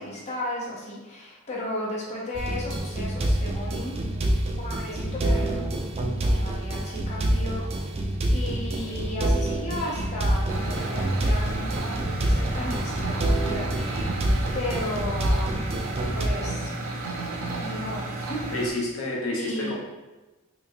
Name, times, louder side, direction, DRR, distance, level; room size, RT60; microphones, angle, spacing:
voice 1, 0.0-3.9 4.6-5.6 6.2-7.9 8.3-14.2 14.5-15.5 16.1-16.7 17.6-18.5 19.4-19.7, left 1 dB, 35° left, -5 dB, 0.8 m, -34 dB
sound 1, 2.3-16.3, right 1 dB, 30° right, 0.3 m, -26 dB
sound 2, 10.5-18.7, right 2 dB, 85° right, 0.6 m, -33 dB
voice 2, 18.5-19.7, left 1 dB, 90° left, -3 dB, 0.9 m, -29 dB
3.5 x 3.0 x 2.7 m, 1.1 s
head